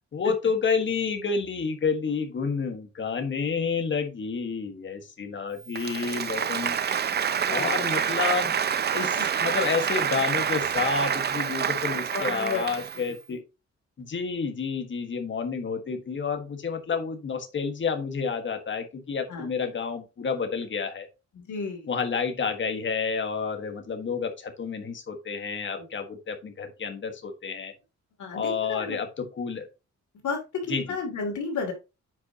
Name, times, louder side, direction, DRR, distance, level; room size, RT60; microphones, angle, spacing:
voice 1, 0.1-6.8 7.5-8.6 8.9-13.4 14.0-21.1 21.9-27.7 28.3-29.7 30.7-30.8, left 5 dB, 40° left, 5 dB, 1.5 m, -29 dB
Applause, 5.7-13.1, right 7 dB, 35° right, 0.5 m, -27 dB
voice 2, 7.5-7.9 9.2-9.4 12.1-12.6 12.9-13.1 19.3-19.4 21.3-21.9 25.8-25.9 28.2-29.0 30.2-31.7, left 4 dB, 90° left, 2 dB, 2.8 m, -33 dB
9.2 x 5.4 x 2.8 m, 0.28 s
wide cardioid pair, 165°, 29 cm